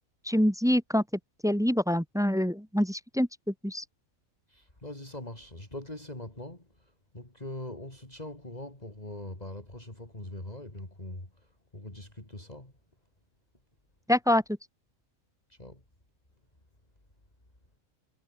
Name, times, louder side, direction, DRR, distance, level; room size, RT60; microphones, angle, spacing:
voice 1, 0.3-1.0 1.4-3.3 3.6-3.8 14.1-14.4, equal, 5° right, 1.1 m, -25 dB
voice 2, 4.5-6.7 7.1-11.3 11.7-12.7 15.5-15.8, left 1 dB, 30° left, 4.7 m, -42 dB
omnidirectional pair, 1.5 m